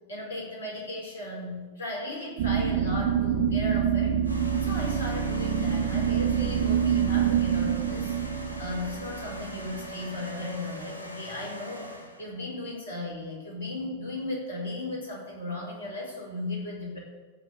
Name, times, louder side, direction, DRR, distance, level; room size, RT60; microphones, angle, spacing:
voice 1, 0.1-4.1 4.6-8.1 8.6-11.9 12.2-17.0, left 2 dB, 70° left, -2 dB, 5.1 m, -36 dB
sound 1, 2.4-10.3, right 8 dB, 55° right, 0.7 m, -26 dB
sound 2, 4.2-12.4, left 1 dB, 90° right, 1.4 m, -41 dB
15.0 x 5.4 x 8.6 m, 1.3 s
figure-of-eight pair, 90°, 0 cm